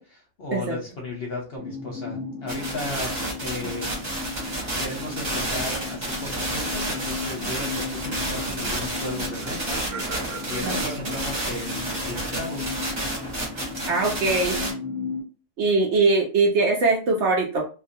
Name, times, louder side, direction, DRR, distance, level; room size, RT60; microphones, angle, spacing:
voice 1, 0.0-3.1 3.4-3.9 4.8-9.8 10.5-12.7, left 2 dB, 55° left, -1 dB, 0.7 m, -35 dB
sound 1, 1.6-15.2, left 4 dB, ahead, 0.9 m, -35 dB
sound 2, 2.5-14.7, right 1 dB, 35° right, 0.9 m, -31 dB
Laughter, 8.7-8.8 8.9-12.6, right 4 dB, 85° right, 1.1 m, -41 dB
voice 2, 13.9-14.6 15.6-17.6, right 3 dB, 65° right, 0 dB, 0.7 m, -21 dB
2.3 x 2.3 x 2.6 m, 0.35 s
omnidirectional pair, 1.5 m